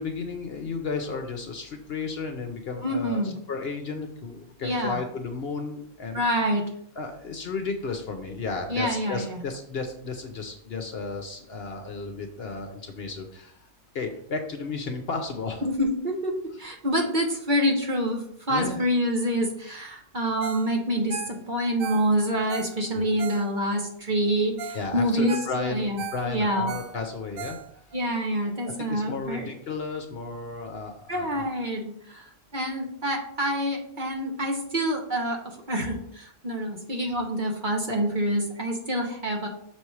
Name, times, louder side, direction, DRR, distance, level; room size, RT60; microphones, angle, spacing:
voice 1, 0.0-6.2 7.0-13.7 13.9-15.7 18.5-18.8 22.9-23.1 24.7-27.6 28.8-31.5, left 4 dB, 55° left, 5 dB, 0.9 m, -33 dB
voice 2, 2.8-3.3 4.6-5.0 6.1-6.7 8.7-9.4 15.6-15.9 16.2-26.0 26.2-26.7 27.9-29.5 31.1-32.2 32.5-39.5, equal, 40° right, 1 dB, 1.1 m, -27 dB
Ringtone, 20.4-20.7 21.0-23.8 24.3-24.4 24.6-24.9 25.1-28.0 28.5-28.6, right 7 dB, 85° right, 1.1 m, -38 dB
6.3 x 4.3 x 4.7 m, 0.67 s
omnidirectional pair, 1.4 m